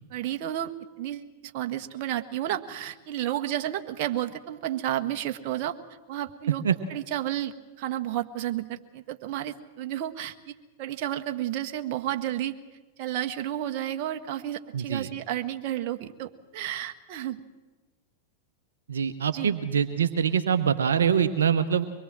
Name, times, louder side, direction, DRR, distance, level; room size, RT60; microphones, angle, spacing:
voice 1, 0.1-0.7 1.0-5.8 6.1-10.5 10.8-12.6 13.0-17.4 19.3-19.5, right 12 dB, 55° right, 6 dB, 1.5 m, -32 dB
voice 2, 14.7-15.1 18.9-21.9, right 7 dB, 80° right, 9 dB, 1.1 m, -24 dB
24.5 x 21.5 x 7.6 m, 1.2 s
hypercardioid pair, 100°, 0 cm